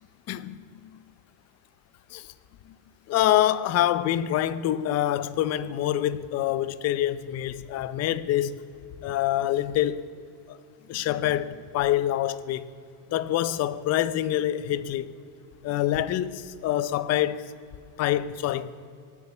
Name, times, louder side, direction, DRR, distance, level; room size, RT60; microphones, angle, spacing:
voice 1, 0.3-0.9 2.1-2.3 3.1-8.6 9.0-10.1 10.5-10.6 10.9-12.7 13.1-15.1 15.6-17.5 18.0-18.7, left 12 dB, 40° left, 0.6 m, -26 dB
17.5 x 8.3 x 9.8 m
cardioid pair, 170°, 41 cm